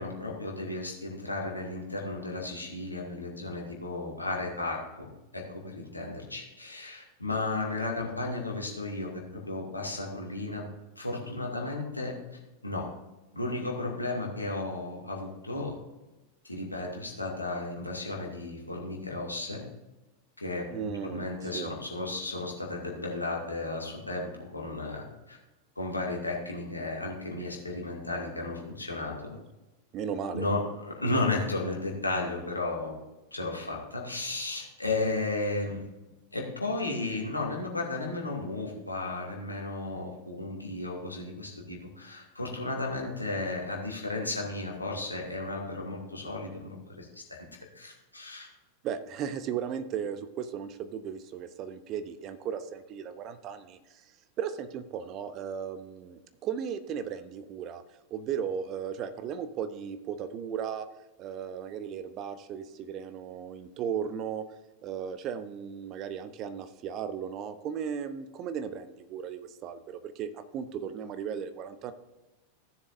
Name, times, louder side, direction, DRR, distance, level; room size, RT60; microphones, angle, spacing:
voice 1, 0.0-10.7 11.0-12.2 12.6-12.9 13.3-15.8 16.4-19.6 20.4-20.7 21.0-25.4 25.8-29.4 30.3-33.0 33.3-35.8 36.3-47.4 47.7-48.5, left 2 dB, 85° left, -1 dB, 2.3 m, -34 dB
voice 2, 20.7-21.7 29.9-30.5 48.8-54.1 54.4-57.8 58.1-60.9 61.2-64.4 64.8-71.9, right 8 dB, 35° right, 11 dB, 0.8 m, -36 dB
16.0 x 7.2 x 2.6 m, 1.1 s
figure-of-eight pair, 90°, 0 cm